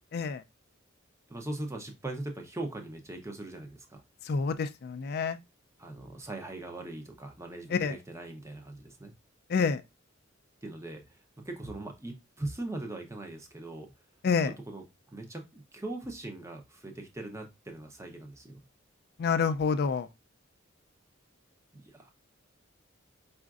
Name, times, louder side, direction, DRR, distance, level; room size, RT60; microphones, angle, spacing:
voice 1, 1.3-4.0 5.8-9.1 10.6-11.2 11.4-13.9 14.7-14.8 15.1-18.6 21.7-22.1, right 2 dB, 15° right, 0.7 m, -40 dB
voice 2, 4.3-5.4 7.7-8.0 9.5-9.8 14.2-14.5 19.2-20.1, left 5 dB, 55° left, 0.3 m, -28 dB
4.9 x 2.5 x 2.4 m
head